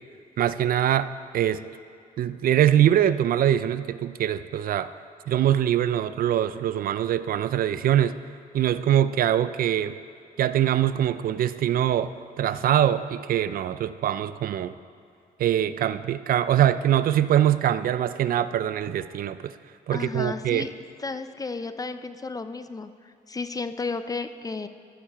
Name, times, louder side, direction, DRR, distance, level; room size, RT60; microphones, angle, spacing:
voice 1, 0.4-1.1 1.3-1.6 2.2-4.9 5.3-8.2 8.5-9.9 10.4-14.7 15.4-19.5 19.9-20.7, right 11 dB, 65° right, 14 dB, 0.4 m, -23 dB
voice 2, 19.9-20.7 21.0-24.7, left 4 dB, 20° left, 11 dB, 0.5 m, -33 dB
14.0 x 8.6 x 4.5 m, 2.4 s
cardioid pair, 105°, 16 cm